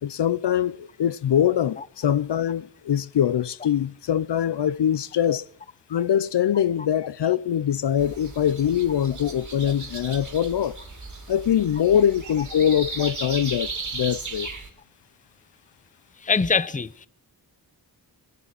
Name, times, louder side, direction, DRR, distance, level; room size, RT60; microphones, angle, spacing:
voice 1, 0.0-5.5 5.9-10.8 11.3-14.5, left 9 dB, 70° left, 0.6 m, -23 dB
sound 1, 8.0-14.7, right 3 dB, 40° right, 2.2 m, -36 dB
voice 2, 16.2-17.1, left 5 dB, 20° left, 0.6 m, -23 dB
21.0 x 8.4 x 7.5 m
cardioid pair, 55°, 43 cm